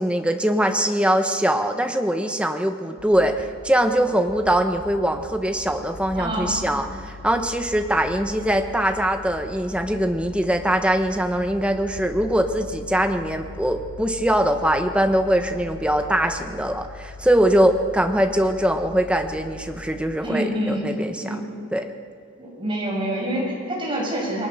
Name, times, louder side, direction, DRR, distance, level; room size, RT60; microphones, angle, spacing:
voice 1, 0.0-21.3 21.7-21.9, right 1 dB, 5° right, 5 dB, 1.2 m, -22 dB
sound 1, 3.0-20.0, left 3 dB, 90° left, 4.0 m, -41 dB
voice 2, 6.1-6.6 20.2-20.8 21.2-21.5 22.4-24.5, right 1 dB, 20° right, -2 dB, 6.6 m, -26 dB
28.0 x 21.5 x 6.8 m, 2.2 s
head